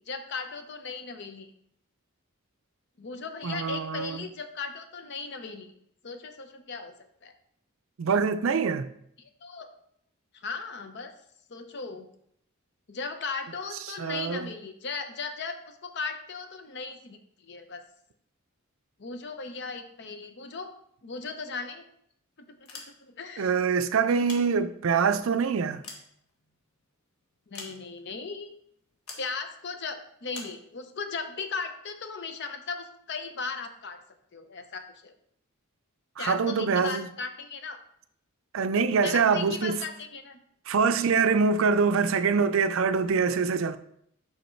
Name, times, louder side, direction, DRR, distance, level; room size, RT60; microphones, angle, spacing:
voice 1, 0.1-1.5 3.0-5.7 6.0-6.9 7.2-7.3 9.4-9.7 10.3-11.1 11.5-12.0 12.9-17.8 19.0-20.7 21.0-21.8 22.5-23.6 27.5-28.5 29.2-34.0 34.3-35.1 36.2-37.8 39.0-40.4 42.1-42.2, left 4 dB, 50° left, 0.6 m, -37 dB
voice 2, 3.4-4.2 8.0-8.9 14.0-14.5 23.4-25.8 36.2-37.1 38.5-39.8 40.7-43.8, right 5 dB, 65° right, 0.4 m, -24 dB
sound 1, 22.5-23.3 24.0-25.0 25.5-26.8 27.5-28.2 29.1-29.3 30.3-30.6, left 4 dB, 85° left, 1.3 m, -45 dB
5.4 x 4.9 x 4.4 m
head